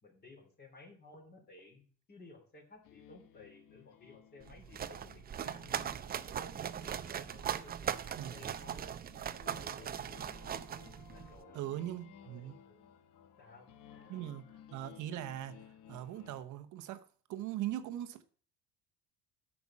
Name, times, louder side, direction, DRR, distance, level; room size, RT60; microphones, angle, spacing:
voice 1, 0.0-1.8 2.1-9.0 9.4-10.5 11.0-11.6 12.2-12.9 13.4-14.3, left 3 dB, 30° left, 3.1 m, -57 dB
sound 1, 2.8-16.5, left 10 dB, 70° left, 1.1 m, -58 dB
sound 2, 4.4-11.4, right 9 dB, 30° right, 0.5 m, -40 dB
voice 2, 8.2-8.5 11.5-12.5 14.1-15.6 15.9-17.0 17.3-18.2, right 13 dB, 65° right, 1.0 m, -40 dB
9.5 x 6.1 x 7.3 m
cardioid pair, 140°, 33 cm